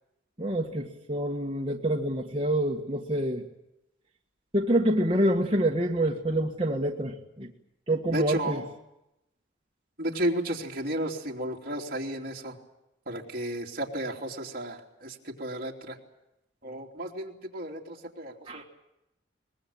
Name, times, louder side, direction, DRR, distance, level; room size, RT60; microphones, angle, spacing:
voice 1, 0.4-3.4 4.5-7.5 7.9-8.6 18.5-18.6, right 1 dB, 30° right, -1 dB, 1.7 m, -27 dB
voice 2, 8.1-8.6 10.0-12.6 13.1-16.0 16.6-18.6, right 1 dB, 50° right, -1 dB, 3.1 m, -33 dB
24.0 x 20.5 x 8.8 m, 0.88 s
head